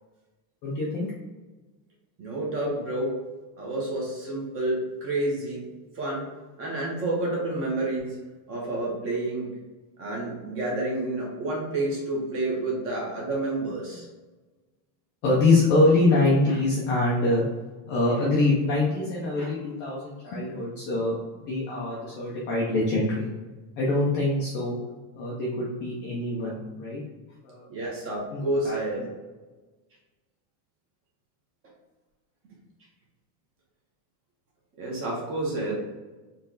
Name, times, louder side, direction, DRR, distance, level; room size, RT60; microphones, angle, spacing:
voice 1, 0.6-1.1 15.2-17.4 17.9-21.1 21.5-23.3 23.8-24.8 25.1-27.0 27.4-27.9 28.3-28.8, left 2 dB, 25° left, -5 dB, 0.4 m, -24 dB
voice 2, 2.2-3.2 3.6-5.6 5.9-6.3 6.6-8.2 8.5-9.5 10.0-14.0 27.7-29.0 34.8-35.8, right 2 dB, 25° right, -3 dB, 1.2 m, -29 dB
4.3 x 3.2 x 3.8 m, 1.2 s
cardioid pair, 180°, 49 cm